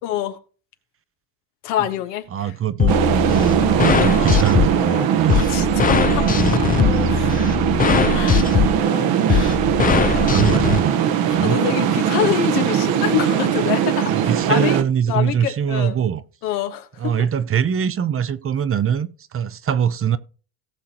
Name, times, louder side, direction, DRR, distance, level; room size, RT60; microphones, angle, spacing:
voice 1, 0.0-0.4 1.6-2.5 5.3-6.3 6.5-6.7 7.1-7.5 8.1-8.7 9.3-9.6 11.3-14.8 15.1-15.9 16.4-17.1, left 11 dB, 85° left, 1.4 m, -26 dB
voice 2, 2.3-3.0 3.2-5.5 7.0-7.5 9.9-11.6 11.9-12.1 14.1-16.2 17.0-20.2, right 8 dB, 30° right, 0.7 m, -23 dB
sound 1, 2.8-10.8, left 7 dB, 20° left, 0.5 m, -20 dB
sound 2, 2.9-14.8, right 9 dB, 55° right, 1.0 m, -20 dB
18.0 x 6.3 x 2.9 m
supercardioid pair, 100°, 44 cm